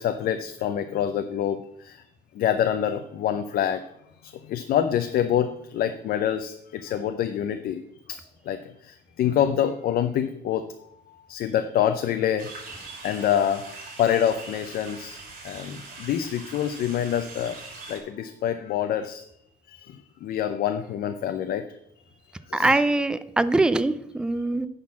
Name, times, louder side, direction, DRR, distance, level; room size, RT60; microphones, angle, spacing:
voice 1, 0.0-2.0 2.3-3.8 4.2-7.8 8.1-8.2 8.5-12.7 13.0-15.2 15.4-17.6 17.9-21.6 22.0-22.7, left 9 dB, 60° left, 8 dB, 0.6 m, -26 dB
sound 1, 12.4-18.0, right 3 dB, 55° right, 3.0 m, -42 dB
voice 2, 22.5-24.7, right 2 dB, 5° right, 13 dB, 0.4 m, -22 dB
10.5 x 3.9 x 7.2 m, 0.76 s
cardioid pair, 110°, 17 cm